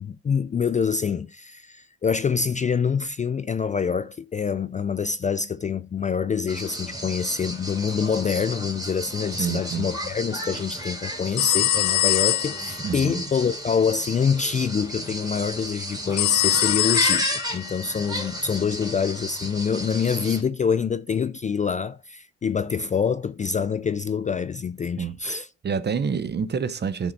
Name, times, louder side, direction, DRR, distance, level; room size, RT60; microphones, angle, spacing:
voice 1, 0.0-25.5, left 6 dB, 25° left, 0.3 m, -26 dB
sound 1, 6.5-20.4, equal, 10° right, 3.0 m, -33 dB
voice 2, 9.3-9.9 12.8-13.2 25.0-27.1, right 6 dB, 35° right, 0.7 m, -28 dB
sound 2, 11.4-12.7 16.2-17.8, left 14 dB, 80° left, 0.6 m, -22 dB
10.5 x 5.2 x 4.0 m
cardioid pair, 90°, 30 cm